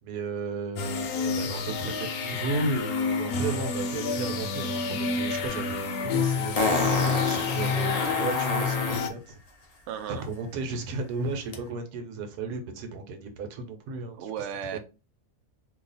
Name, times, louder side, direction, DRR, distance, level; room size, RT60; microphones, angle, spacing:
voice 1, 0.0-9.4 10.1-14.3 14.7-14.8, right 3 dB, 85° right, 6 dB, 1.3 m, -34 dB
sound 1, 0.8-9.1, left 5 dB, 75° left, 1.1 m, -29 dB
Fart, 5.5-5.6 6.6-9.1 11.5-11.6, left 2 dB, 40° left, 0.5 m, -28 dB
voice 2, 9.9-10.2 14.2-14.8, right 8 dB, 65° right, 7 dB, 0.7 m, -34 dB
2.8 x 2.4 x 3.9 m, 0.30 s
omnidirectional pair, 1.6 m